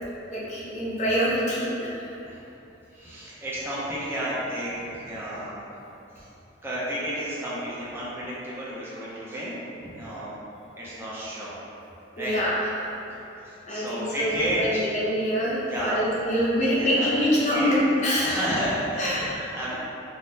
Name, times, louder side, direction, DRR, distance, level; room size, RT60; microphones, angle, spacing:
voice 1, 0.3-2.1 12.2-12.7 13.7-18.5 19.0-19.2, equal, 35° left, -7 dB, 0.5 m, -25 dB
voice 2, 2.9-5.7 6.1-6.3 6.6-10.3 10.8-11.5 12.2-12.3 13.1-14.9 15.6-16.2 16.6-17.8 18.2-19.8, equal, 10° right, -9 dB, 0.4 m, -32 dB
3.4 x 2.1 x 2.6 m, 3.0 s
head